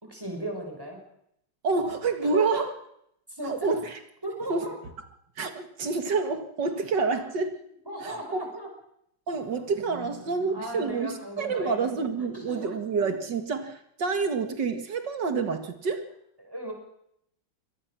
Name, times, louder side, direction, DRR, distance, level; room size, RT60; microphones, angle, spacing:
voice 1, 0.0-1.0 2.2-2.6 3.3-3.7 4.2-4.8 7.9-8.7 10.5-11.8 12.3-12.7 16.4-16.7, right 1 dB, 10° right, 2 dB, 5.9 m, -35 dB
voice 2, 1.6-2.7 3.4-4.0 4.5-4.7 5.4-7.6 8.0-8.4 9.3-16.1, right 4 dB, 75° right, 7 dB, 2.5 m, -28 dB
24.5 x 19.0 x 6.1 m, 0.75 s
omnidirectional pair, 1.9 m